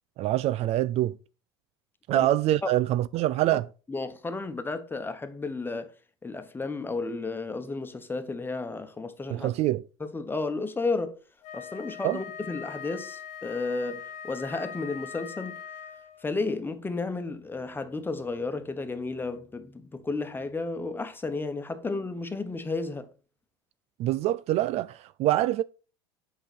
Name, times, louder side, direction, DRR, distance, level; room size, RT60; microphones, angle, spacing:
voice 1, 0.2-1.1 2.1-3.7 9.3-9.8 12.0-12.2 24.0-25.6, right 14 dB, 50° right, 0.4 m, -25 dB
voice 2, 3.9-5.9 6.2-9.5 10.0-11.1 11.5-15.6 16.2-23.1, left 3 dB, 15° left, 1.1 m, -33 dB
Wind instrument woodwind instrument, 11.4-16.3, left 8 dB, 55° left, 1.1 m, -41 dB
7.9 x 5.5 x 4.4 m
hypercardioid pair, 85°, 14 cm